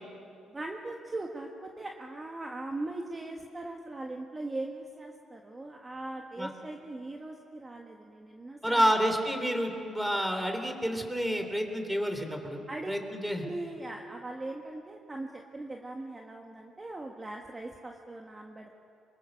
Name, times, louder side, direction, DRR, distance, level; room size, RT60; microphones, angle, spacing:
voice 1, 0.5-8.9 12.7-12.9 13.4-18.8, right 2 dB, 25° right, 1 dB, 1.7 m, -40 dB
voice 2, 8.6-12.6 12.9-13.5, equal, 5° right, 5 dB, 3.4 m, -29 dB
24.5 x 23.0 x 6.6 m, 2.6 s
cardioid pair, 90°, 0 cm